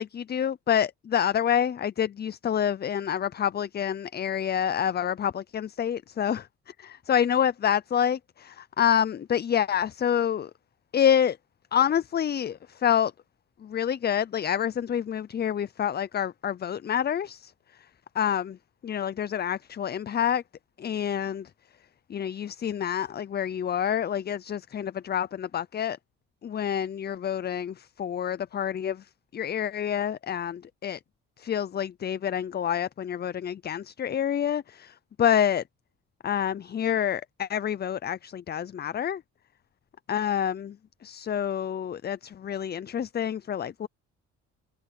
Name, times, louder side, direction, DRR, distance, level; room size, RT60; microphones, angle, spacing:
voice 1, 0.0-6.5 6.8-10.5 10.9-11.4 11.7-13.1 13.6-17.5 18.2-18.6 18.8-20.4 20.8-21.5 22.1-26.0 26.4-29.0 29.3-31.0 31.4-35.6 36.2-39.2 40.1-40.8 41.0-43.9, left 9 dB, 35° left, 0.5 m, -27 dB
cardioid pair, 90°, 30 cm